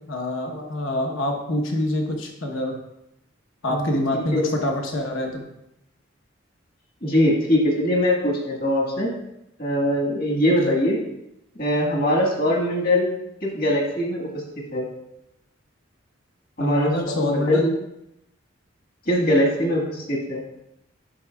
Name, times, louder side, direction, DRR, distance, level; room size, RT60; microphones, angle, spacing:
voice 1, 0.1-2.7 3.6-5.4 10.6-10.7 16.6-17.7, left 1 dB, 80° left, 2 dB, 1.0 m, -25 dB
voice 2, 7.0-9.1 9.6-11.0 11.6-13.1 13.4-14.4 14.7-14.8 16.6-17.6 19.0-20.4, left 1 dB, 50° left, -2 dB, 1.5 m, -22 dB
9.9 x 6.0 x 2.3 m, 0.84 s
head